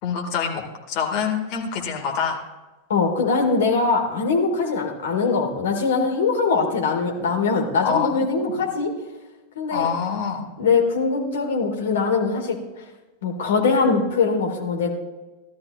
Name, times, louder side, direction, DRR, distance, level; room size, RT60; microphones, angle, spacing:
voice 1, 0.0-2.4 7.8-8.6 9.7-10.4, left 6 dB, 40° left, 2 dB, 2.0 m, -26 dB
voice 2, 2.9-8.9 9.6-9.9 10.6-12.6 13.2-14.9, left 4 dB, 60° left, 1 dB, 2.0 m, -22 dB
16.5 x 12.5 x 2.5 m, 1.2 s
figure-of-eight pair, 90°, 0 cm